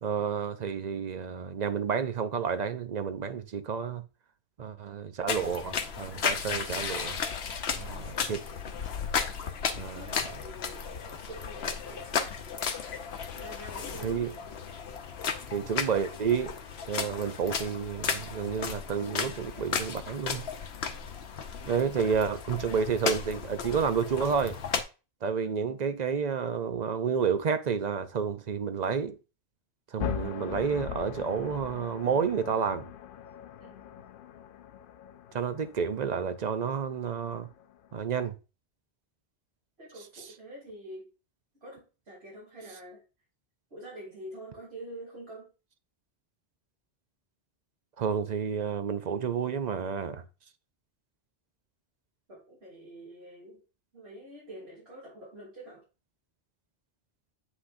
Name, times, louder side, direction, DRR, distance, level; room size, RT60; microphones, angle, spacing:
voice 1, 0.0-4.0 4.6-7.2 7.8-8.4 9.8-10.0 14.0-14.3 15.5-16.5 16.9-20.5 21.7-24.6 25.2-29.2 29.9-32.9 35.3-37.5 37.9-38.3 48.0-50.2, right 6 dB, 50° right, 0.7 m, -30 dB
sound 1, 5.3-24.8, left 6 dB, 80° left, 1.0 m, -34 dB
voice 2, 9.9-12.3 13.3-14.4 25.4-25.8 33.6-34.1 39.8-41.1 41.6-43.0 43.7-45.5 52.3-53.6 53.9-55.8, right 1 dB, 75° right, 3.5 m, -46 dB
sound 2, 30.0-38.0, left 9 dB, 65° left, 0.7 m, -41 dB
8.1 x 5.8 x 2.6 m
omnidirectional pair, 1.1 m